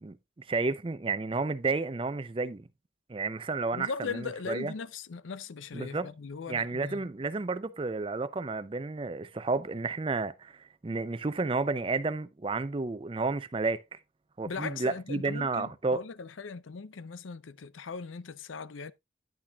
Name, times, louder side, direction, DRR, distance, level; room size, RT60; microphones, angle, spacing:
voice 1, 0.0-2.7 3.1-4.2 4.5-4.7 5.7-6.1 6.5-13.8 14.4-16.0, right 3 dB, 25° right, 0.4 m, -31 dB
voice 2, 3.7-7.1 14.4-18.9, left 5 dB, 90° left, 0.5 m, -39 dB
10.5 x 8.5 x 2.4 m
head